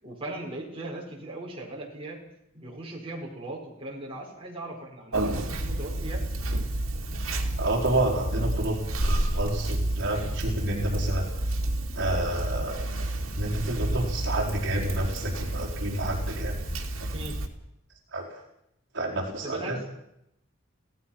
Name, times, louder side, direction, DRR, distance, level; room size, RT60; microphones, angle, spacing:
voice 1, 0.0-2.2 2.5-6.2 17.1-17.4 19.4-19.9, right 2 dB, 25° right, -2 dB, 5.4 m, -38 dB
Conversation, 5.1-17.5, right 1 dB, 75° right, 2.7 m, -30 dB
voice 2, 7.6-11.3 11.9-13.1 13.4-16.6 18.1-18.4 18.9-19.8, right 1 dB, 60° right, -2 dB, 4.4 m, -29 dB
26.0 x 17.0 x 5.9 m, 0.80 s
head